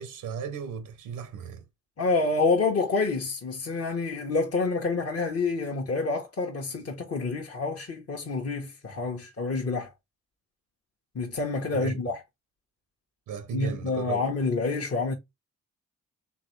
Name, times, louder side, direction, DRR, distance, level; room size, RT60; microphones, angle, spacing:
voice 1, 0.0-1.6 11.7-12.1 13.3-14.2, right 6 dB, 90° right, 0.7 m, -36 dB
voice 2, 2.0-9.9 11.1-12.2 13.5-15.1, left 3 dB, 45° left, 1.1 m, -28 dB
3.9 x 3.5 x 3.1 m
supercardioid pair, 60°, 33 cm